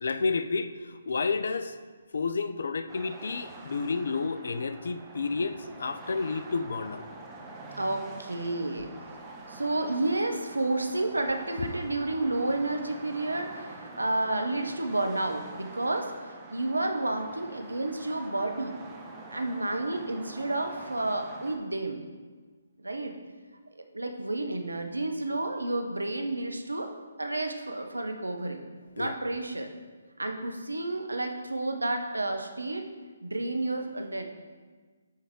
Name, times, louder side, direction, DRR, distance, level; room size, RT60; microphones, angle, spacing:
voice 1, 0.0-1.8 2.1-7.0 8.8-8.9 11.6-11.7 29.0-29.2, left 4 dB, 65° left, 10 dB, 0.4 m, -31 dB
sound 1, 2.9-21.6, right 2 dB, 15° right, 0.8 m, -46 dB
voice 2, 7.8-8.9 9.5-16.1 16.5-18.7 19.3-22.0 22.8-23.1 23.9-26.9 27.2-28.6 29.0-29.7 30.2-32.8 33.2-34.2, right 2 dB, 90° right, 5 dB, 0.7 m, -30 dB
8.6 x 3.5 x 3.6 m, 1.4 s
figure-of-eight pair, 140°, 0 cm